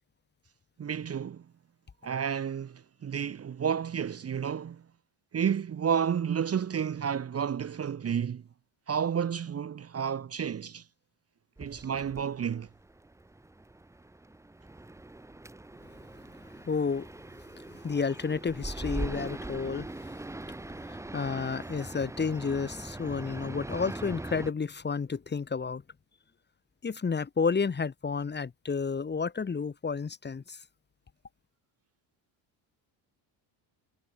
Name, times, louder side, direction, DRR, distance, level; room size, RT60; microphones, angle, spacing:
voice 1, 0.8-1.4 2.0-4.8 5.3-8.4 8.9-10.8 11.6-12.7, right 7 dB, 30° right, 1.2 m, -31 dB
sound 1, 11.6-24.5, right 2 dB, 5° right, 1.0 m, -41 dB
voice 2, 16.6-17.1 17.8-19.9 20.8-25.8 26.8-30.6, left 5 dB, 20° left, 1.8 m, -31 dB
cardioid pair, 155°, 49 cm